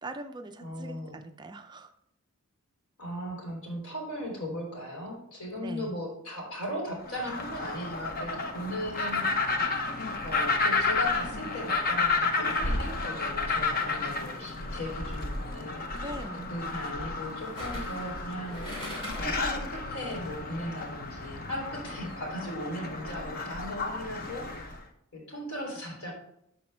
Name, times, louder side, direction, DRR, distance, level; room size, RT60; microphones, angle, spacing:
voice 1, 0.0-1.9 5.6-5.9 15.9-16.5, right 1 dB, 20° right, 8 dB, 0.4 m, -41 dB
voice 2, 0.6-1.2 3.0-9.5 10.2-16.1 16.3-18.6 19.2-24.8 25.1-26.1, equal, 80° left, -1 dB, 3.3 m, -37 dB
sound 1, 7.1-24.8, left 3 dB, 40° left, 0.8 m, -32 dB
sound 2, 17.6-19.5 19.9-20.0, left 1 dB, 25° left, 2.6 m, -41 dB
13.0 x 4.3 x 3.3 m, 0.78 s
head